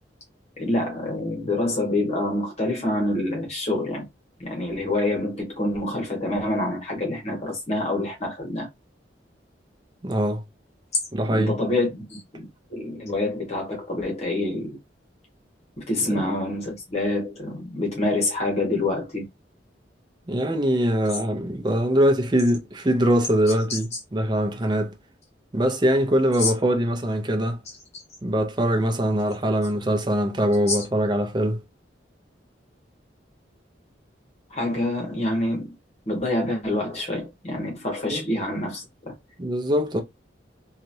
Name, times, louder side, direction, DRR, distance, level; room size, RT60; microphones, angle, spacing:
voice 1, 0.6-4.1 4.4-8.7 11.2-14.8 15.8-19.2 23.4-24.0 26.4-26.5 30.7-30.9 34.5-35.7 36.1-39.1, left 2 dB, 35° left, 1.2 m, -27 dB
voice 2, 10.0-10.4 11.1-11.5 16.1-16.2 20.3-24.9 25.5-27.6 28.2-31.6 38.1-38.2 39.4-40.0, equal, 25° right, 0.6 m, -22 dB
3.0 x 2.4 x 2.6 m
head